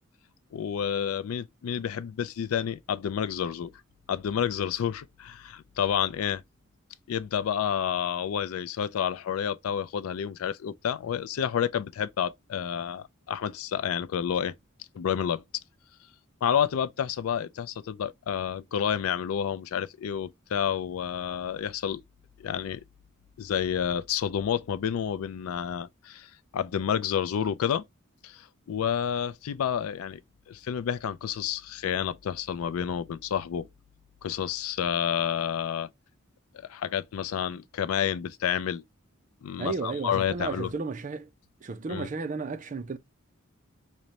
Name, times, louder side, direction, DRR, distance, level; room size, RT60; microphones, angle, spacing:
voice 1, 0.5-3.7 4.1-6.4 7.1-14.5 14.9-15.4 16.4-22.0 22.4-22.8 23.4-27.8 28.2-30.2 30.5-33.7 34.2-35.9 36.7-38.8 39.4-40.7 41.9-42.1, left 8 dB, 85° left, 0.3 m, -29 dB
voice 2, 39.6-41.3 41.6-43.0, right 4 dB, 35° right, 0.4 m, -33 dB
5.0 x 2.1 x 2.8 m
head